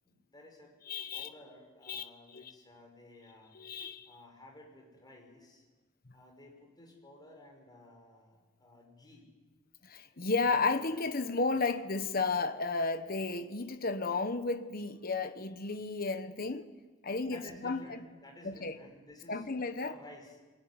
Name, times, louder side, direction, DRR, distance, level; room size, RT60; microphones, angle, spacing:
voice 1, 0.0-0.7 1.1-3.5 4.1-5.6 6.1-9.3 17.3-19.4 19.8-20.4, left 1 dB, 20° left, 2 dB, 5.8 m, -54 dB
voice 2, 0.9-1.3 1.9-2.5 3.5-4.1 9.8-16.7 17.0-18.0 18.4-18.7 19.3-19.9, left 3 dB, 50° left, 10 dB, 1.3 m, -33 dB
22.5 x 20.0 x 9.8 m, 1.3 s
head